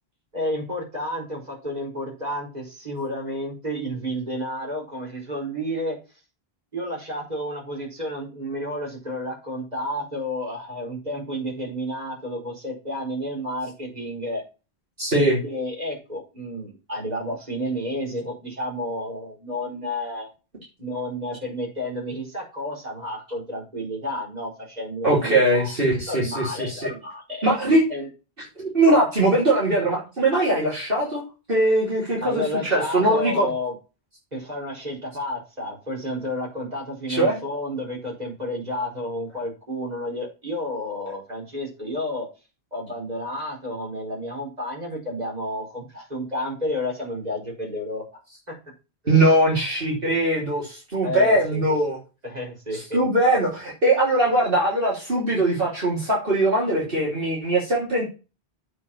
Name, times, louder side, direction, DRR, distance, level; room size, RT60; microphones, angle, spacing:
voice 1, 0.3-6.0 6.7-14.4 15.2-20.3 20.8-25.7 26.1-27.6 27.9-28.1 32.2-33.7 34.3-42.3 42.7-48.0 48.5-48.6 49.0-49.4 51.0-51.8 52.2-53.0, left 1 dB, 40° right, -1 dB, 4.6 m, -31 dB
voice 2, 15.0-15.4 25.0-26.9 27.4-27.8 28.6-31.2 31.5-33.5 37.1-37.4 49.1-52.0 52.7-58.0, right 1 dB, 60° right, -5 dB, 3.5 m, -21 dB
8.2 x 5.1 x 7.1 m, 0.31 s
omnidirectional pair, 1.0 m